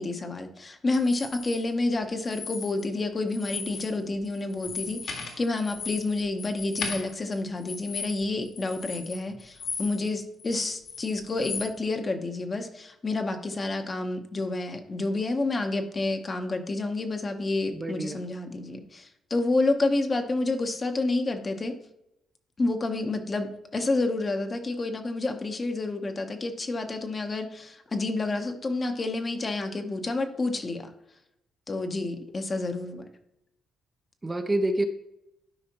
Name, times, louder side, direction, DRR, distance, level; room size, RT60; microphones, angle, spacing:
voice 1, 0.0-21.7 22.6-30.9 31.7-33.0, left 2 dB, 30° left, 6 dB, 1.1 m, -29 dB
sound 1, 0.9-1.6 2.2-3.0 3.3-3.9 4.2-10.1 10.4-11.7, left 5 dB, 65° left, 2.1 m, -37 dB
voice 2, 17.7-18.2 34.2-34.9, right 1 dB, 20° right, 6 dB, 0.7 m, -27 dB
12.0 x 4.9 x 3.0 m, 0.84 s
cardioid pair, 90°, 0 cm